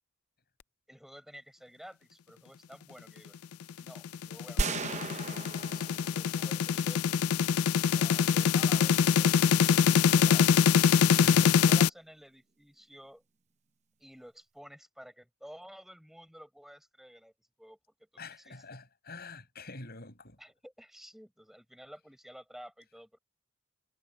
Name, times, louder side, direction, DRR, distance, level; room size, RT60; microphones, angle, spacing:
voice 1, 0.9-3.4 3.8-7.2 7.5-10.6 11.2-13.2 14.0-18.6 20.4-23.2, equal, ahead, 7.9 m, -52 dB
sound 1, 3.8-11.9, left 7 dB, 80° left, 0.4 m, -24 dB
sound 2, 4.6-6.9, right 3 dB, 30° right, 0.8 m, -35 dB
voice 2, 11.2-11.5 18.2-20.4, left 3 dB, 45° left, 7.3 m, -45 dB
head